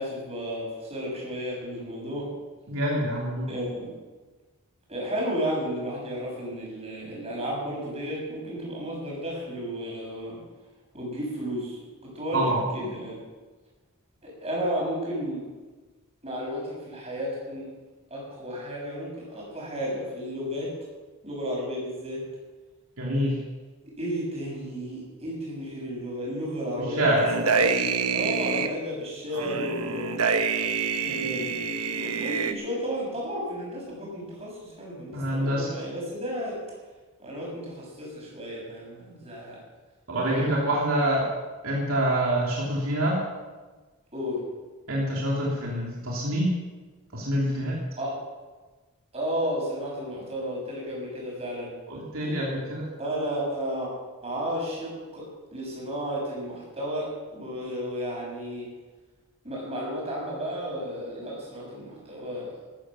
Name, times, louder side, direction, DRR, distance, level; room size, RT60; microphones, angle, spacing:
voice 1, 0.0-2.3 3.5-3.9 4.9-10.4 10.9-13.2 14.2-15.4 16.2-17.7 18.1-20.7 21.2-22.2 23.8-30.2 31.0-36.6 37.2-39.6 40.2-40.4 44.1-44.5 48.0-48.1 49.1-51.7 53.0-53.9 54.2-58.7 59.4-62.5, equal, 25° right, -4 dB, 6.8 m, -33 dB
voice 2, 2.7-3.5 12.3-12.6 23.0-23.4 26.8-27.2 35.1-35.7 40.1-41.3 41.6-43.2 44.9-46.6 47.1-47.8 51.9-52.9, right 1 dB, 65° right, -4 dB, 3.0 m, -26 dB
sound 1, 27.2-28.7 29.3-32.5, right 5 dB, 80° right, 1.2 m, -26 dB
14.0 x 14.0 x 6.3 m, 1.3 s
head